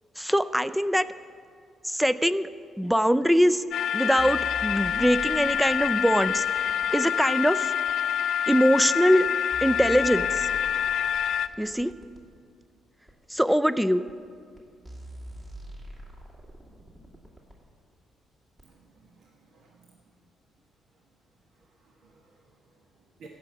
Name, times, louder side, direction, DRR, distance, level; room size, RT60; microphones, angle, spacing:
voice 1, 0.2-1.1 1.8-2.5 2.8-3.6 3.9-7.8 8.5-9.3 9.6-10.5 11.6-11.9 13.3-14.0, equal, 5° right, 15 dB, 0.4 m, -23 dB
sound 1, 3.7-11.5, left 9 dB, 80° left, 0.4 m, -27 dB
sound 2, 4.2-6.9 7.9-8.0 8.8-8.9 9.3-12.2 13.1-13.2 14.1-14.2 14.6-14.7 14.8-17.6 18.6-18.7, right 1 dB, 30° right, 2.7 m, -44 dB
voice 2, 18.6-20.2 20.9-21.0 21.5-23.3, right 4 dB, 70° right, -1 dB, 1.3 m, -57 dB
14.5 x 6.0 x 8.3 m, 2.2 s
cardioid pair, 90°, 0 cm